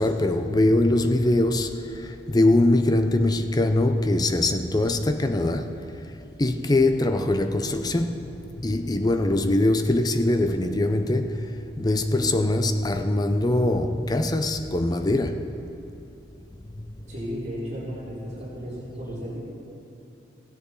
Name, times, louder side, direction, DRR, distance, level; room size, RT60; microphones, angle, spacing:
voice 1, 0.0-5.8 6.4-8.3 8.6-15.5, left 1 dB, 20° left, 0.5 m, -22 dB
voice 2, 6.9-7.2 17.1-19.4, equal, 40° right, 2.8 m, -34 dB
15.5 x 9.7 x 4.0 m
head